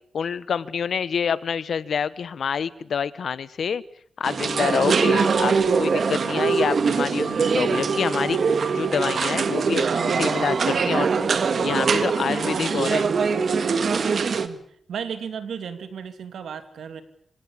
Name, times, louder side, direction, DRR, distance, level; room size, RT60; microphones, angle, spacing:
voice 1, 0.1-3.8 4.2-8.4 8.7-13.1, left 7 dB, 70° left, 17 dB, 1.0 m, -27 dB
sound 1, 4.2-14.5, right 5 dB, 60° right, 1.8 m, -22 dB
voice 2, 14.9-17.0, right 7 dB, 90° right, 9 dB, 2.8 m, -34 dB
26.0 x 17.0 x 8.7 m, 0.64 s
cardioid pair, 95°, 0 cm